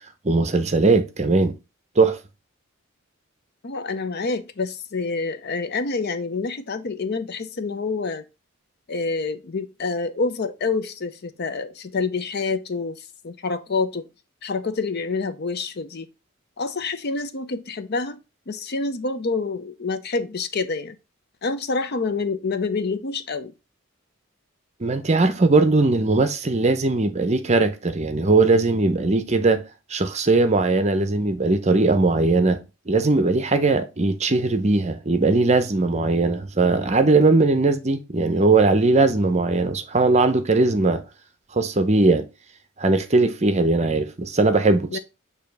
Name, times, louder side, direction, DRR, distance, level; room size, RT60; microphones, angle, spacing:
voice 1, 0.2-1.6 2.0-2.2 24.8-29.6 29.9-32.6 32.9-41.0 41.5-42.3 42.8-45.0, right 3 dB, 30° right, 0.7 m, -19 dB
voice 2, 3.6-8.2 8.9-14.1 14.4-16.1 16.6-18.2 18.5-21.0 21.4-23.5 44.9-45.0, left 4 dB, 50° left, 0.6 m, -27 dB
6.8 x 2.8 x 5.3 m
head